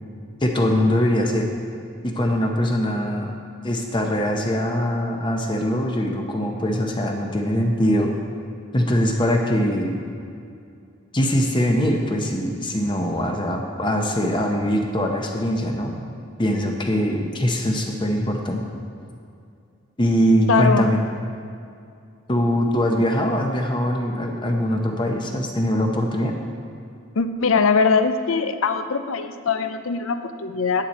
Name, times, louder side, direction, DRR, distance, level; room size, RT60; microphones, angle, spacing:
voice 1, 0.4-1.5 2.0-3.3 3.6-8.1 8.7-10.0 11.1-15.9 16.4-18.6 20.0-21.0 22.3-26.3, equal, 25° left, 2 dB, 0.7 m, -22 dB
voice 2, 20.5-20.9 27.2-30.9, left 5 dB, 80° left, 9 dB, 0.6 m, -21 dB
9.9 x 9.2 x 4.2 m, 2.4 s
head